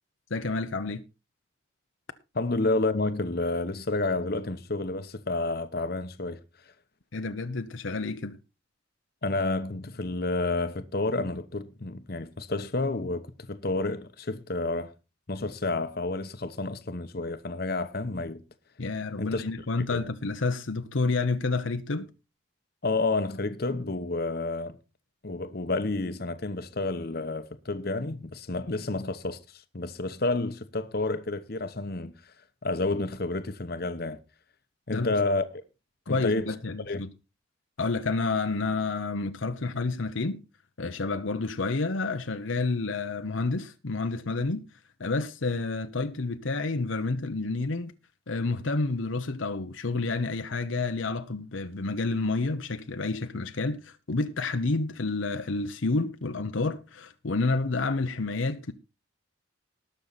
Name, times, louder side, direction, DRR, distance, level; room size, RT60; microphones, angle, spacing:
voice 1, 0.3-1.0 7.1-8.4 18.8-22.1 34.9-35.2 36.1-37.1 37.8-40.4 40.8-44.7 45.0-47.9 48.3-58.7, left 3 dB, 75° left, 0.9 m, -29 dB
voice 2, 2.3-6.4 9.2-14.9 15.3-18.4 19.2-19.4 19.9-20.0 22.8-24.8 25.2-29.4 29.7-32.3 32.6-34.2 34.9-35.4 36.1-36.5 36.9-37.0, left 2 dB, 50° left, 1.0 m, -30 dB
19.5 x 6.5 x 4.1 m
head